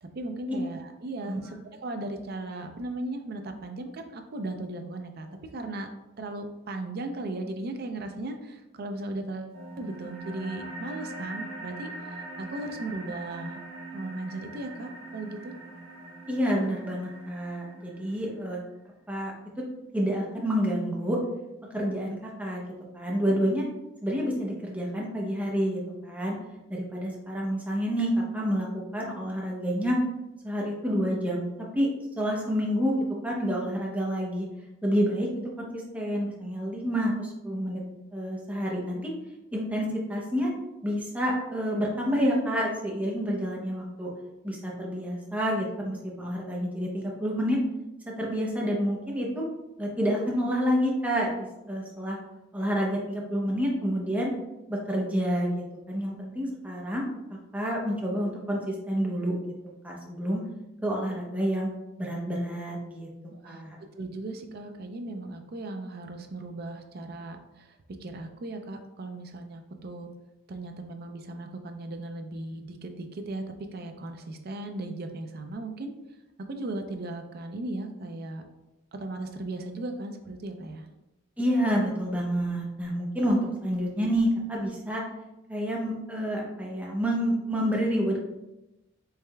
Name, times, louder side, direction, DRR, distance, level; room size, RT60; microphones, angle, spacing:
voice 1, 0.0-1.6 1.8-5.3 5.5-5.9 6.2-13.6 13.9-15.5 63.3-63.6 64.0-70.1 70.5-75.9 76.5-78.4 78.9-80.9, right 2 dB, 50° right, 5 dB, 0.4 m, -37 dB
sound 1, 9.5-18.5, right 2 dB, 70° right, 1.1 m, -42 dB
voice 2, 16.3-18.6 19.1-19.6 19.9-21.2 21.7-22.7 22.9-23.6 24.0-26.4 26.7-30.0 30.4-31.9 32.2-33.0 33.2-34.5 34.8-35.3 35.6-37.8 38.1-39.1 39.5-40.5 40.8-44.1 44.4-47.6 48.2-49.4 49.8-52.2 52.5-54.3 54.7-57.1 57.5-59.4 59.8-60.4 60.8-61.7 62.0-63.1 63.4-63.8 81.4-85.0 85.5-88.2, equal, 5° right, -3 dB, 0.7 m, -28 dB
4.7 x 3.2 x 2.2 m, 0.97 s
head